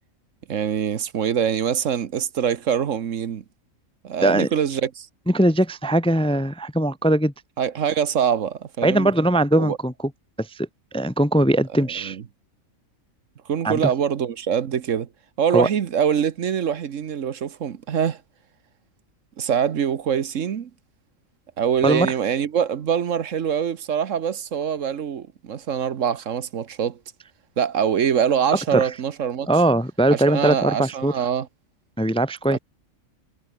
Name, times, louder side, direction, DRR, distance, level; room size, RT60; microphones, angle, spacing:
voice 1, 0.5-3.4 4.0-5.1 7.6-9.1 9.6-9.8 12.0-12.2 13.5-15.1 15.4-18.2 19.4-20.7 21.6-27.0 27.6-29.5 30.1-31.5 32.5-32.6, right 8 dB, 70° right, 1.4 m, -24 dB
voice 2, 5.3-7.3 8.8-9.9 10.4-10.7 10.9-12.2 13.6-13.9 15.5-15.7 21.8-22.1 28.7-28.9 29.5-31.1 32.0-32.6, right 1 dB, 5° left, 0.6 m, -20 dB
omnidirectional pair, 1.4 m